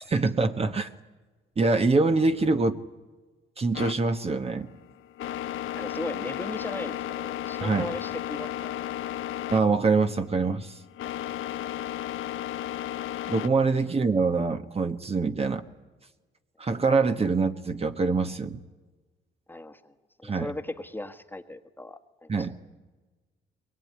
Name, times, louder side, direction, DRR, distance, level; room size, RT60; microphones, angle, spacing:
voice 1, 0.1-0.9 1.6-2.8 3.6-4.7 7.6-7.9 9.5-10.8 13.3-15.6 16.6-18.6 20.2-20.5 22.3-22.6, right 4 dB, 30° right, 7 dB, 1.3 m, -24 dB
sound 1, 3.7-13.5, left 12 dB, 85° left, 0.9 m, -34 dB
voice 2, 5.7-8.7 19.5-22.5, left 1 dB, 10° left, 6 dB, 1.6 m, -38 dB
22.5 x 21.0 x 9.7 m, 1.3 s
cardioid pair, 90°, 20 cm